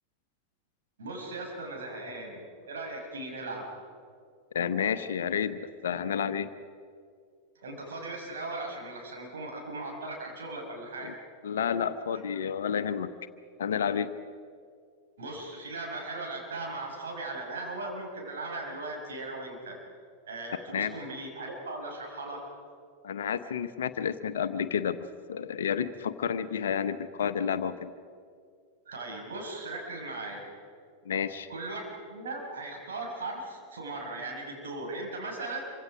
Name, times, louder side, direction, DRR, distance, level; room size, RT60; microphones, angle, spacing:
voice 1, 1.0-3.7 7.5-11.1 12.1-12.2 15.2-19.8 20.3-22.5 28.9-30.5 31.5-35.6, right 2 dB, 65° right, -1 dB, 6.4 m, -38 dB
voice 2, 4.5-6.5 11.0-11.1 11.4-13.1 13.6-14.1 20.7-20.9 23.0-25.0 25.3-27.9 31.0-31.5, left 8 dB, 65° left, 11 dB, 0.9 m, -30 dB
27.0 x 25.0 x 5.1 m, 2.2 s
figure-of-eight pair, 90°, 0 cm